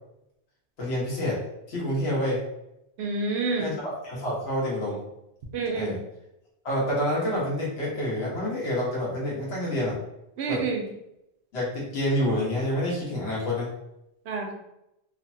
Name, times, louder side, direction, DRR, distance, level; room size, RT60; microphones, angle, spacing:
voice 1, 0.8-1.4 1.7-2.4 3.6-5.0 5.7-6.0 6.6-10.0 10.5-10.6 11.5-13.7, left 1 dB, 85° left, -5 dB, 1.3 m, -28 dB
voice 2, 3.0-3.7 5.5-6.0 10.4-10.8 14.3-14.5, right 4 dB, 90° right, 2 dB, 0.9 m, -28 dB
3.1 x 2.1 x 2.6 m, 0.85 s
omnidirectional pair, 1.1 m